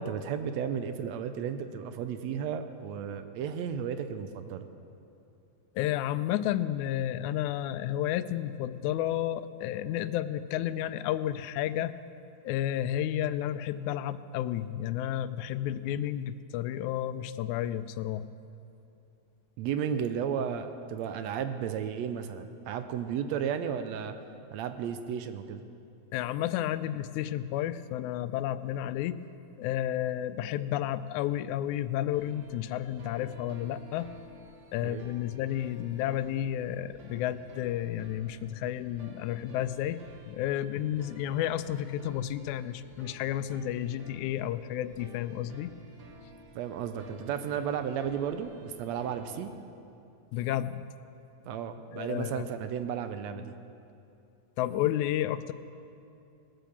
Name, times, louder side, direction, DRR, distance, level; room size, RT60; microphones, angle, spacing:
voice 1, 0.0-4.7 19.6-24.2 24.5-25.6 34.8-35.0 46.6-49.5 51.5-53.5, right 8 dB, 75° right, 9 dB, 1.8 m, -33 dB
voice 2, 5.8-12.0 12.4-18.2 26.1-29.2 29.6-34.1 34.7-40.0 40.3-45.7 50.3-50.9 51.9-52.5 54.6-55.5, left 12 dB, 90° left, 14 dB, 2.0 m, -31 dB
sound 1, 32.1-49.4, right 1 dB, 60° right, 2.3 m, -52 dB
19.0 x 9.1 x 7.1 m, 2.7 s
omnidirectional pair, 3.3 m